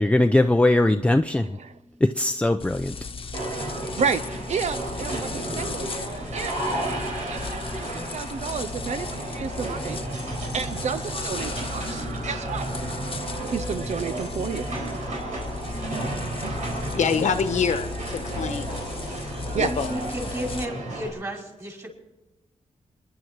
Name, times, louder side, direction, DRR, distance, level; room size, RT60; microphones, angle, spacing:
voice 1, 0.0-1.5 2.0-3.0, left 1 dB, 10° left, 7 dB, 0.5 m, -20 dB
sound 1, 2.6-20.6, left 4 dB, 45° left, 1.0 m, -36 dB
sound 2, 3.3-21.1, right 1 dB, 85° right, 4.1 m, -32 dB
voice 2, 4.0-5.9 6.3-6.6 7.3-10.0 10.5-12.7 13.5-14.8 19.5-19.8, right 6 dB, 65° right, 11 dB, 0.6 m, -31 dB
voice 3, 16.9-18.8 19.5-19.9, left 6 dB, 75° left, 9 dB, 1.1 m, -25 dB
voice 4, 19.6-21.9, equal, 25° right, 0 dB, 5.3 m, -33 dB
27.5 x 11.0 x 4.6 m, 1.0 s
cardioid pair, 95°, 12 cm